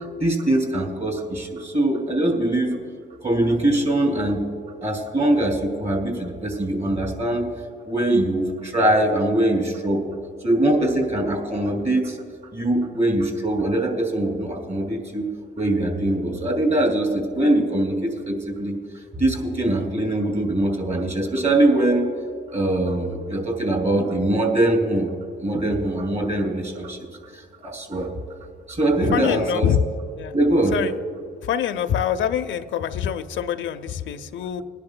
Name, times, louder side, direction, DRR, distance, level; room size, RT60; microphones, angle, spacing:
voice 1, 0.2-2.8 3.2-4.5 4.8-7.4 7.8-10.1 10.4-12.2 12.5-15.3 15.6-18.8 19.2-22.1 22.5-25.1 25.4-27.0 27.3-28.1 28.7-29.7 30.3-30.8, right 1 dB, 35° right, 2 dB, 2.8 m, -22 dB
voice 2, 29.1-29.8 30.2-30.3 30.7-30.9 31.4-34.6, left 9 dB, 70° left, 8 dB, 0.6 m, -25 dB
22.5 x 10.5 x 2.2 m, 2.2 s
cardioid pair, 90°, 20 cm